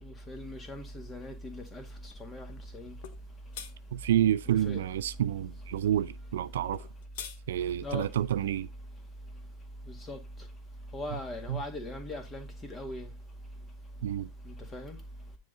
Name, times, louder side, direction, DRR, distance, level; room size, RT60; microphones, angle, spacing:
voice 1, 0.0-2.9 4.5-4.8 7.8-8.1 9.9-10.2 10.9-13.1 14.4-15.0, left 1 dB, 20° left, 2.0 m, -40 dB
sound 1, 3.0-3.2 3.5-3.7 6.7-7.4, left 8 dB, 50° left, 1.0 m, -41 dB
voice 2, 3.9-6.9 7.5-8.7 11.5-11.6 14.0-14.3, right 11 dB, 60° right, 0.3 m, -29 dB
9.6 x 3.9 x 4.0 m
figure-of-eight pair, 90°, 0 cm